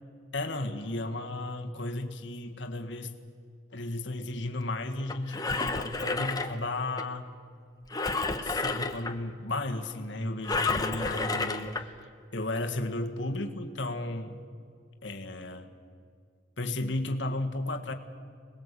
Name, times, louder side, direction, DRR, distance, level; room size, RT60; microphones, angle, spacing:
voice 1, 0.3-3.1 3.7-7.3 8.4-12.0 12.3-14.5 15.0-15.7 16.6-17.9, left 2 dB, 65° left, 5 dB, 1.8 m, -34 dB
Engine, 5.1-7.0 7.9-9.1 10.4-11.8 12.5-12.6, left 3 dB, 20° left, 1.1 m, -30 dB
26.5 x 20.0 x 8.4 m, 2.2 s
head